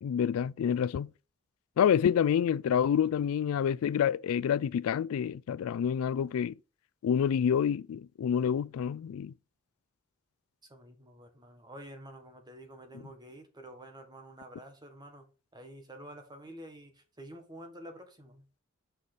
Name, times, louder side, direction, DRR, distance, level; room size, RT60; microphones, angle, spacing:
voice 1, 0.0-1.1 1.8-6.5 7.0-9.3, left 8 dB, 75° left, 0.3 m, -28 dB
voice 2, 10.7-15.3 15.5-18.5, right 1 dB, 20° right, 1.5 m, -49 dB
6.5 x 5.4 x 4.9 m
head